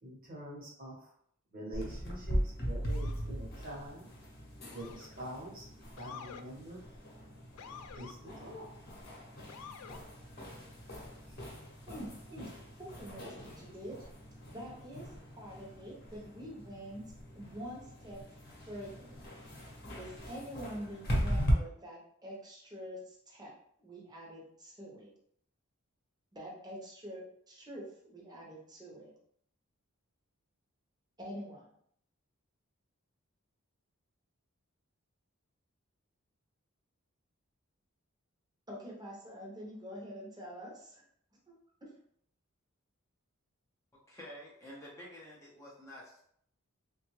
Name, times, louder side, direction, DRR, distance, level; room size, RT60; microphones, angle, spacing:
voice 1, 0.0-1.1 1.5-4.1 4.7-5.7 6.0-6.8 7.9-8.7 11.3-11.4 12.3-12.6 13.2-13.3 14.7-14.8, right 1 dB, 40° right, -3 dB, 1.0 m, -45 dB
sound 1, 1.7-21.5, equal, 45° left, 0.9 m, -39 dB
Motor vehicle (road) / Siren, 2.9-3.3 4.7-5.2 6.0-6.5 7.6-8.2 9.5-10.0, left 6 dB, 90° left, 0.3 m, -49 dB
voice 2, 11.9-12.2 12.8-14.0 14.4-19.2 19.9-23.5 23.8-25.1 26.3-29.1 31.2-31.7 38.7-41.0 41.5-42.0, equal, 20° right, -3 dB, 0.8 m, -46 dB
voice 3, 43.9-46.2, equal, 15° left, -5 dB, 0.5 m, -50 dB
3.3 x 2.3 x 3.1 m, 0.67 s
head